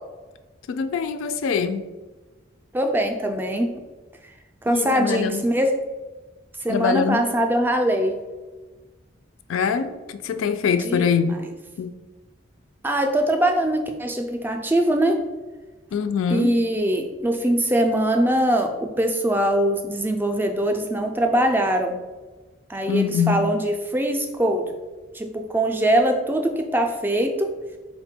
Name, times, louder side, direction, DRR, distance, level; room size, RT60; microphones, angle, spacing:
voice 1, 0.7-1.8 4.7-5.4 6.7-7.3 9.5-11.4 11.8-12.0 15.9-16.6 22.9-23.5, left 6 dB, 90° left, 10 dB, 0.3 m, -23 dB
voice 2, 2.7-3.7 4.6-5.7 6.6-8.2 10.6-11.0 12.8-15.2 16.3-22.0 22.7-24.7 25.1-27.5, right 1 dB, 10° right, 4 dB, 0.3 m, -22 dB
4.3 x 2.2 x 4.2 m, 1.2 s
head